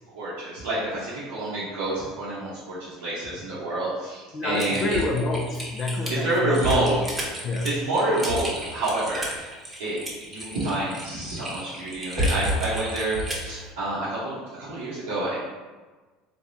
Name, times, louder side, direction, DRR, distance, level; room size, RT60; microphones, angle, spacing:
voice 1, 0.1-5.0 6.1-7.0 7.6-9.5 9.8-10.0 10.3-14.4 14.7-15.3, right 2 dB, 90° right, -11 dB, 0.8 m, -28 dB
voice 2, 4.3-6.9 7.4-7.7, left 2 dB, 45° left, -2 dB, 0.4 m, -28 dB
Typing, 4.6-13.5, equal, 15° right, 0.9 m, -31 dB
3.4 x 2.2 x 2.6 m, 1.3 s
hypercardioid pair, 85°, 0 cm